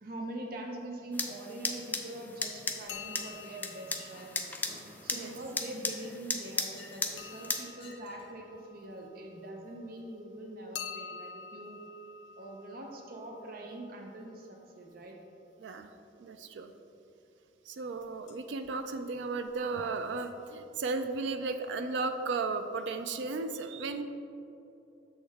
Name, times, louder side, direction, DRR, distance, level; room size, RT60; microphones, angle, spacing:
voice 1, 0.0-4.4 5.0-11.8 12.4-15.2, right 1 dB, 55° right, 1 dB, 0.7 m, -43 dB
sound 1, 1.1-7.6, left 3 dB, 10° left, 0.4 m, -37 dB
sound 2, 2.9-5.6 7.2-9.9 10.7-14.6 18.0-18.4 18.6-18.7 19.5-19.6 19.8-19.9, left 7 dB, 85° left, 0.4 m, -48 dB
Chink clink, 4.0-4.3 4.7-5.2 5.7-7.2 7.7-8.4, left 3 dB, 30° left, 1.2 m, -55 dB
voice 2, 15.6-15.9 16.2-16.7 17.7-24.0, right 3 dB, 85° right, 7 dB, 0.4 m, -35 dB
6.9 x 6.3 x 3.5 m, 2.8 s
head